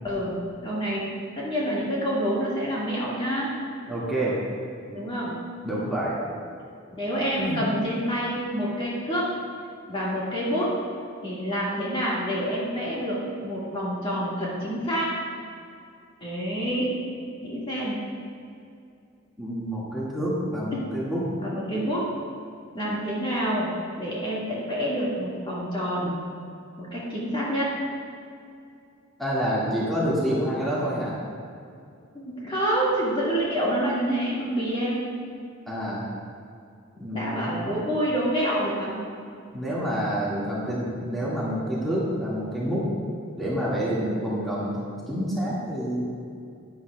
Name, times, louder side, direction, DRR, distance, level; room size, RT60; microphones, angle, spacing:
voice 1, 0.0-1.1 1.4-3.5 4.9-5.4 6.9-9.3 9.9-10.7 11.2-15.1 16.2-16.9 17.4-18.0 20.7-20.9 21.4-22.1 22.7-23.7 24.0-26.1 26.8-27.8 32.1-35.0 37.1-38.9 43.9-44.3, equal, 25° left, -7 dB, 1.9 m, -27 dB
voice 2, 3.9-4.4 5.6-6.2 7.4-7.6 19.4-21.2 29.2-31.2 35.7-36.0 37.0-37.5 39.5-42.8 43.4-44.7 45.1-46.0, equal, ahead, -9 dB, 2.0 m, -28 dB
11.0 x 10.5 x 2.4 m, 2.4 s
head